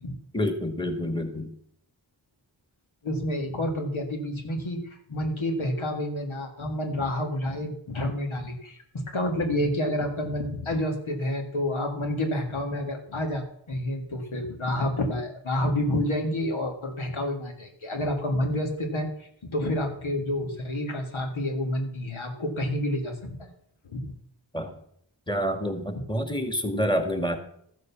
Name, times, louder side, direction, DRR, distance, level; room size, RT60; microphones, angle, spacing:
voice 1, 0.3-1.5 24.5-24.8 25.3-27.4, equal, 10° left, 7 dB, 2.1 m, -28 dB
voice 2, 3.0-23.5 23.8-24.1, left 1 dB, 85° left, 3 dB, 2.0 m, -29 dB
13.5 x 6.6 x 7.1 m, 0.69 s
cardioid pair, 40°, 47 cm